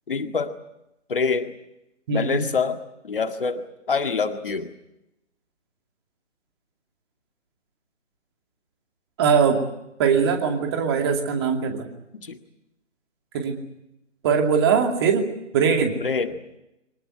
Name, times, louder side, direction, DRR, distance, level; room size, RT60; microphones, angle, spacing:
voice 1, 0.1-0.5 1.1-1.5 2.1-4.7 12.1-12.4 16.0-16.4, left 5 dB, 45° left, 7 dB, 2.0 m, -26 dB
voice 2, 2.1-2.5 9.2-9.6 10.0-11.9 13.3-13.6 14.2-15.3 15.5-15.9, right 6 dB, 20° right, 4 dB, 2.5 m, -21 dB
25.0 x 19.0 x 9.3 m, 0.88 s
figure-of-eight pair, 150°, 37 cm